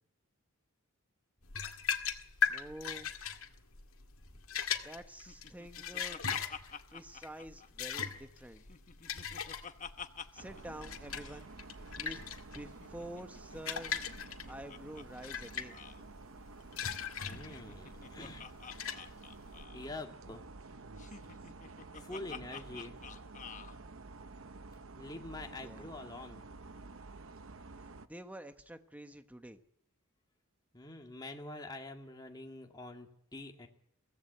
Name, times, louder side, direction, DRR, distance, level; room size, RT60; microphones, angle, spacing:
sound 1, 1.5-19.6, left 7 dB, 75° left, 2.0 m, -39 dB
voice 1, 2.5-3.1 4.8-6.2 6.9-8.6 10.3-11.5 12.0-12.2 12.5-14.1 14.5-15.8 25.6-25.9 28.1-29.6, right 1 dB, 5° right, 8 dB, 1.2 m, -48 dB
Laughter, 5.3-8.2 8.5-10.6 10.9-11.0 11.2-11.4 12.7-15.0 15.3-15.4 15.7-16.0 17.1-19.9 21.0-23.7, left 6 dB, 35° left, 1.1 m, -49 dB
sound 2, 10.4-28.1, right 3 dB, 65° right, 0.9 m, -51 dB
voice 2, 17.2-18.5 19.5-20.4 22.0-23.0 25.0-26.4 30.7-33.7, left 2 dB, 20° left, 2 dB, 2.1 m, -46 dB
23.0 x 16.5 x 8.1 m, 0.73 s
head